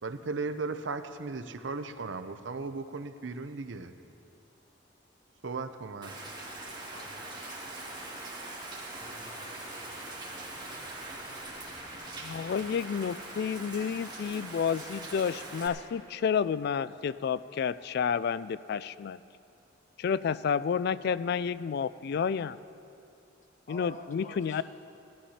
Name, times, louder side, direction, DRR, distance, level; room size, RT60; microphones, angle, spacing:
voice 1, 0.0-3.9 5.4-6.3, right 4 dB, 70° right, 10 dB, 0.7 m, -36 dB
Rain, 6.0-15.7, right 2 dB, 25° right, 2.2 m, -42 dB
voice 2, 6.9-7.6 8.9-10.0 23.7-24.6, left 1 dB, 40° left, 2 dB, 1.3 m, -49 dB
voice 3, 12.2-19.2 20.0-22.6 23.7-24.6, left 7 dB, 55° left, 16 dB, 0.3 m, -30 dB
17.5 x 12.0 x 4.3 m, 2.6 s
head